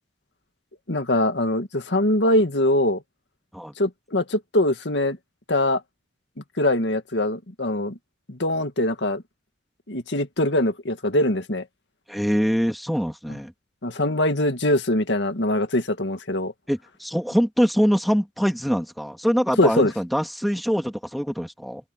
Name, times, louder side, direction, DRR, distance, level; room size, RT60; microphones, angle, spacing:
voice 1, 0.9-3.0 3.8-5.2 5.5-5.8 6.6-7.9 8.3-9.2 9.9-11.7 13.8-16.5 19.6-19.9, left 1 dB, 80° left, 2.0 m, -22 dB
voice 2, 12.1-13.5 16.7-21.8, equal, ahead, 2.5 m, -24 dB
head